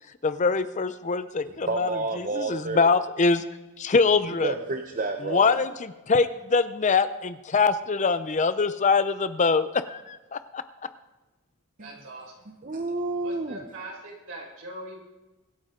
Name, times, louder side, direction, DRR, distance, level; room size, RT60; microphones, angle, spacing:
voice 1, 0.2-1.9 2.2-3.4 3.8-4.5 5.3-10.6, left 4 dB, 35° left, 12 dB, 0.5 m, -24 dB
voice 2, 1.6-2.9 4.4-5.5 11.8-11.9 12.6-13.6, right 3 dB, 35° right, 5 dB, 0.8 m, -30 dB
voice 3, 11.8-12.4 13.2-15.0, right 2 dB, 60° right, -2 dB, 5.2 m, -41 dB
24.0 x 9.5 x 3.8 m, 1.1 s
head